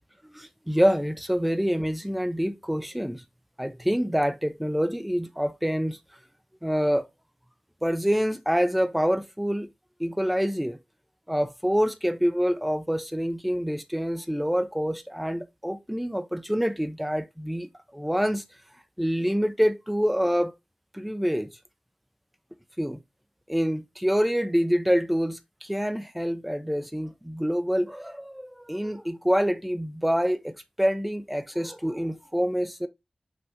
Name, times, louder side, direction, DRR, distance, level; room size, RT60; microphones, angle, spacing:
voice 1, 0.3-3.2 3.6-6.0 6.6-7.0 7.8-9.7 10.0-10.8 11.3-17.7 17.9-18.4 19.0-20.5 20.9-21.5 22.8-23.0 23.5-32.9, equal, 5° right, 0.5 m, -26 dB
5.5 x 2.8 x 2.7 m
wide cardioid pair, 75°, 2 cm